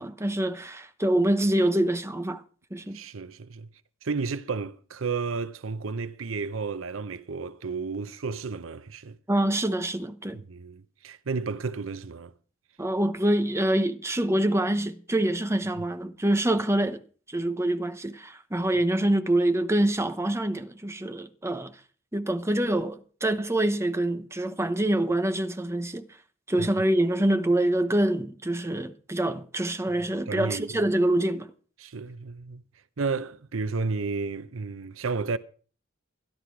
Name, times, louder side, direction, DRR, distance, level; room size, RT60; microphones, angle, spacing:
voice 1, 0.0-2.4 2.7-3.0 9.3-10.4 12.8-17.0 17.3-21.7 22.1-26.1 26.5-31.5, right 1 dB, 15° right, 0.9 m, -25 dB
voice 2, 2.9-3.7 4.0-9.2 10.3-12.3 26.6-26.7 30.3-30.8 31.8-32.6 33.0-35.4, right 4 dB, 85° right, 0.7 m, -32 dB
13.0 x 11.5 x 4.6 m
head